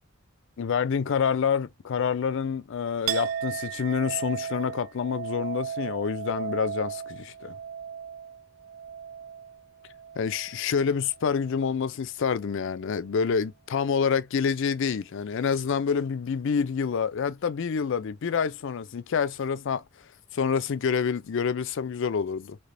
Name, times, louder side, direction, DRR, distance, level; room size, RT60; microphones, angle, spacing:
voice 1, 0.6-7.6 10.2-19.8 20.3-22.6, left 6 dB, 65° left, 0.4 m, -27 dB
Chink clink, 3.1-10.8 11.1-11.8, right 8 dB, 70° right, 0.3 m, -36 dB
3.3 x 2.9 x 2.6 m
head